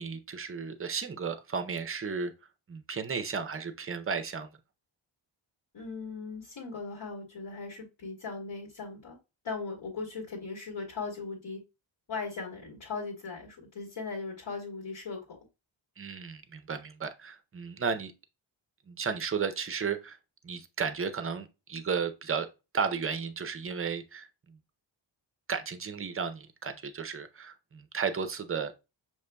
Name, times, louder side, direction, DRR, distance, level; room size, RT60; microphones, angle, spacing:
voice 1, 0.0-2.3 2.7-4.5 16.0-18.1 18.9-20.2 20.4-22.5 22.7-24.6 25.5-28.7, right 5 dB, 30° right, 0.5 m, -34 dB
voice 2, 5.7-9.2 9.4-11.6 12.1-15.4, left 4 dB, 65° left, 1.9 m, -38 dB
6.5 x 2.9 x 2.2 m
wide cardioid pair, 135°, 47 cm